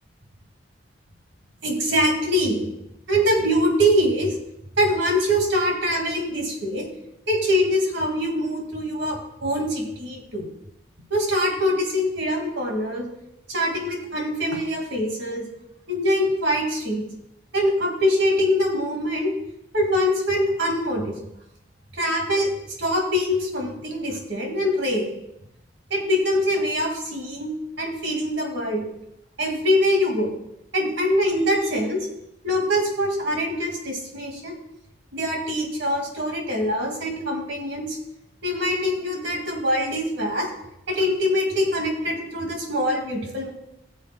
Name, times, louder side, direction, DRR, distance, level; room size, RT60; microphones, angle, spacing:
voice 1, 1.6-2.7 3.1-4.3 4.8-6.9 7.3-10.5 11.1-13.1 13.5-15.4 15.9-17.0 17.5-19.3 19.7-21.1 21.9-22.5 22.8-25.1 25.9-27.5 27.8-28.8 29.4-30.3 30.7-32.0 32.4-34.5 35.1-38.0 38.4-40.5 40.9-43.5, equal, 85° right, 1 dB, 2.2 m, -23 dB
17.5 x 7.1 x 2.3 m, 0.84 s
head